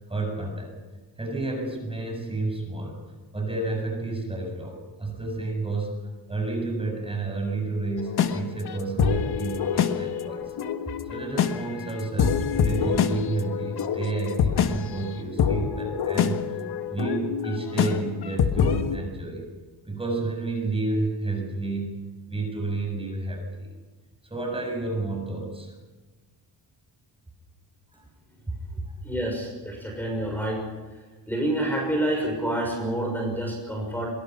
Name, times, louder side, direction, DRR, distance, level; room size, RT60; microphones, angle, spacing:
voice 1, 0.1-0.7 1.2-3.0 3.3-6.0 6.3-10.5 11.1-16.4 16.9-19.5 19.9-22.0 22.3-23.7 24.2-25.7 27.9-28.0 28.5-28.9, right 3 dB, 15° right, 2 dB, 7.1 m, -30 dB
sound 1, 8.0-19.0, left 8 dB, 65° left, 1.7 m, -26 dB
voice 2, 29.0-30.6 31.3-34.1, right 1 dB, 5° left, 0 dB, 6.4 m, -28 dB
24.5 x 23.0 x 6.0 m, 1.3 s
cardioid pair, 115°, 42 cm